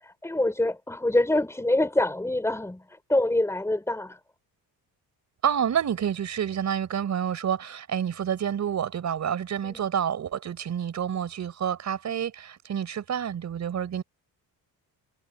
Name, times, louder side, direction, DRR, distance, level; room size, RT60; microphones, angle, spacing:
voice 1, 0.0-4.2 9.6-9.8, left 1 dB, 5° left, 5.3 m, -25 dB
voice 2, 5.4-14.0, right 8 dB, 50° right, 5.2 m, -28 dB
cardioid pair, 140°, 37 cm